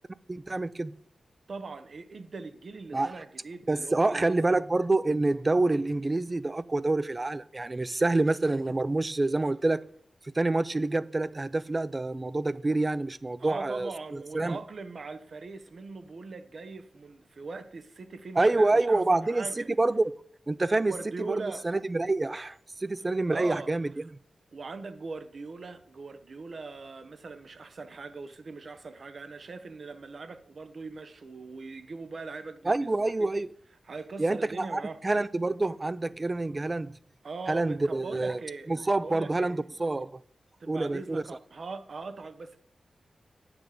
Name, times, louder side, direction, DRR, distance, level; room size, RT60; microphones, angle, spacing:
voice 1, 0.3-1.0 2.9-3.1 3.7-9.8 10.2-13.9 14.3-14.6 18.4-20.1 20.5-21.3 21.6-23.9 32.6-33.5 34.2-36.9 37.5-38.4 38.7-40.1 40.7-41.2, right 2 dB, 30° right, 0.4 m, -27 dB
voice 2, 1.5-4.6 13.4-19.7 20.7-21.7 23.3-23.7 24.5-32.9 33.2-33.3 33.9-35.0 37.2-38.7 39.0-39.5 40.6-42.6, right 4 dB, 60° right, 0.9 m, -41 dB
9.1 x 6.2 x 5.0 m
cardioid pair, 75°, 0 cm